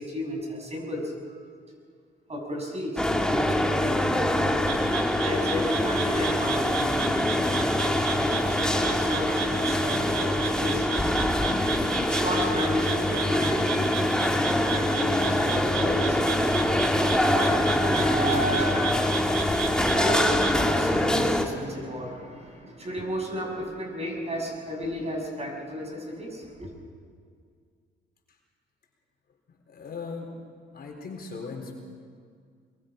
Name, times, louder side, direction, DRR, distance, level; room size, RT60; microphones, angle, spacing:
voice 1, 0.0-1.4 2.3-4.1 5.2-10.9 12.1-14.2 14.7-18.9 19.9-26.7, equal, 30° right, 0 dB, 6.8 m, -33 dB
sound 1, 3.0-21.4, left 1 dB, 5° left, 1.8 m, -24 dB
sound 2, 4.7-20.5, right 6 dB, 80° right, 2.5 m, -35 dB
voice 2, 29.5-30.3 30.7-31.7, left 4 dB, 50° left, 1 dB, 4.2 m, -38 dB
23.0 x 22.5 x 5.3 m, 2.1 s
cardioid pair, 90°, 20 cm